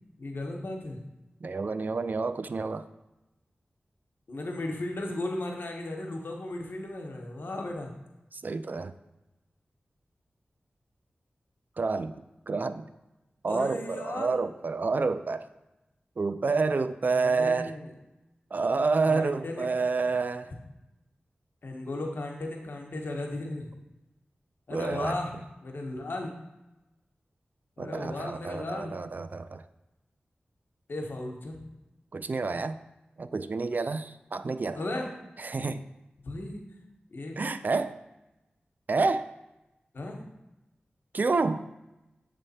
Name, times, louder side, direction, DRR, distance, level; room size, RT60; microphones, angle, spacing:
voice 1, 0.2-1.0 4.3-7.9 13.5-14.4 17.1-17.9 19.1-19.7 21.6-23.7 24.7-26.3 27.8-29.0 30.9-31.6 34.7-35.1 36.2-36.6 37.1-37.4 39.9-40.3, left 2 dB, 75° left, 2 dB, 1.0 m, -35 dB
voice 2, 1.4-2.9 8.3-8.9 11.8-12.1 12.5-12.9 13.4-15.5 16.2-17.7 18.5-20.5 24.7-25.2 27.8-29.6 32.1-32.8 33.2-34.8 35.4-35.9 37.4-38.0 38.9-39.3 41.1-41.6, right 4 dB, 55° right, 11 dB, 0.4 m, -29 dB
7.4 x 3.4 x 4.2 m, 0.96 s
wide cardioid pair, 60°, 4 cm